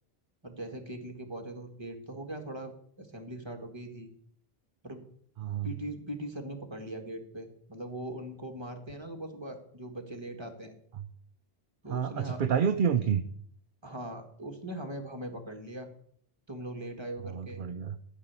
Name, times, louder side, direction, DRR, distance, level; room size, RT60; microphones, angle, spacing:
voice 1, 0.4-2.7 3.0-4.1 4.8-5.0 5.6-10.7 11.8-12.4 13.8-15.9 16.5-17.6, right 1 dB, 25° right, 5 dB, 1.7 m, -40 dB
voice 2, 11.9-13.2 17.2-18.0, right 7 dB, 60° right, 9 dB, 0.7 m, -29 dB
12.5 x 5.6 x 8.2 m, 0.65 s
omnidirectional pair, 1.1 m